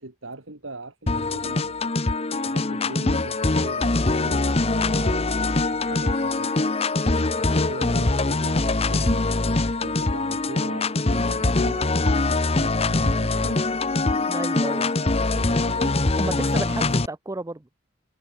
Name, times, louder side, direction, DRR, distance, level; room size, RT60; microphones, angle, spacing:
voice 1, 0.0-1.8 2.4-5.3 5.7-6.6 7.1-9.4 9.8-13.7 14.7-16.1, right 2 dB, 80° right, 4.4 m, -40 dB
sound 1, 1.1-17.1, left 2 dB, 30° left, 0.9 m, -23 dB
Wind instrument woodwind instrument, 2.0-10.9, right 3 dB, 40° right, 6.2 m, -50 dB
voice 2, 14.3-14.9 16.2-17.6, right 2 dB, 15° right, 0.6 m, -32 dB
head